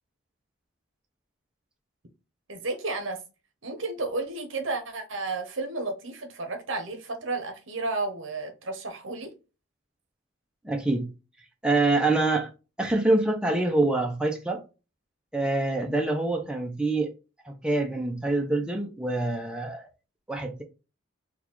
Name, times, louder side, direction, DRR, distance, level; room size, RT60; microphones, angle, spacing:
voice 1, 2.5-3.2 3.6-9.3, right 3 dB, 70° right, 1.0 m, -32 dB
voice 2, 10.6-11.1 11.6-12.5 12.8-14.6 15.3-17.1 17.4-19.9 20.3-20.6, right 2 dB, 5° right, 0.5 m, -25 dB
3.9 x 2.4 x 3.0 m
head